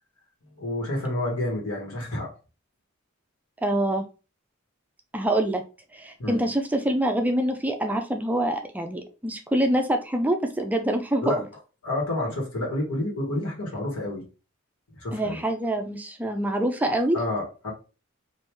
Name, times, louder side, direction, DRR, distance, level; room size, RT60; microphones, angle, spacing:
voice 1, 0.6-2.3 6.2-6.4 11.2-11.4 11.8-14.2 15.0-15.4 17.1-17.7, left 1 dB, 90° left, 1.4 m, -29 dB
voice 2, 3.6-4.1 5.1-5.6 5.9-11.4 15.1-17.2, right 1 dB, 5° right, 0.3 m, -25 dB
3.4 x 2.5 x 3.0 m
head